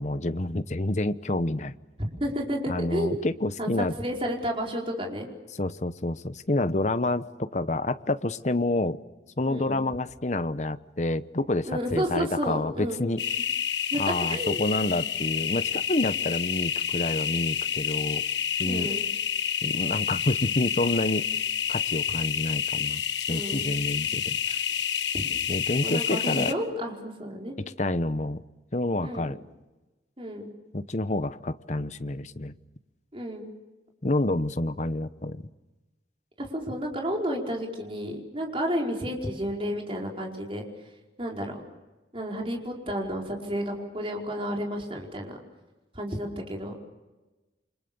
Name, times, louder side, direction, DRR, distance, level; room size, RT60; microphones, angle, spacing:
voice 1, 0.0-1.8 2.7-3.9 5.6-9.0 9.4-13.2 14.0-18.2 18.6-18.9 19.6-21.2 21.7-23.0 23.3-24.6 25.5-26.5 27.8-28.4 28.7-29.4 30.7-32.5 34.0-35.5, left 2 dB, 40° left, 12 dB, 1.0 m, -28 dB
voice 2, 2.0-3.2 3.6-5.3 9.5-9.8 11.7-13.0 13.9-14.0 14.3-14.6 18.6-19.0 23.3-23.7 25.1-25.2 25.8-27.5 29.0-29.4 30.2-30.5 33.1-33.5 36.4-40.6 41.2-41.6 42.1-45.4 45.9-46.8, equal, 30° right, 0 dB, 4.9 m, -31 dB
sound 1, 13.2-26.5, left 9 dB, 80° left, 1.4 m, -29 dB
29.0 x 25.5 x 7.0 m, 1.1 s
head